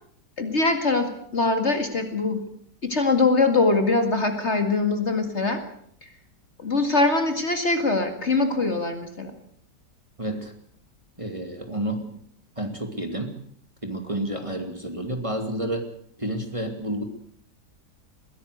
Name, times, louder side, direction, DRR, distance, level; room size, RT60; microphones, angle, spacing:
voice 1, 0.4-2.4 2.8-5.6 6.0-6.1 6.6-9.3, left 3 dB, 40° left, 7 dB, 2.3 m, -23 dB
voice 2, 10.2-10.5 11.2-12.1 12.6-13.4 13.8-15.9 16.2-17.0, right 1 dB, 20° right, 5 dB, 2.5 m, -30 dB
21.5 x 16.5 x 8.1 m, 0.65 s
omnidirectional pair, 1.8 m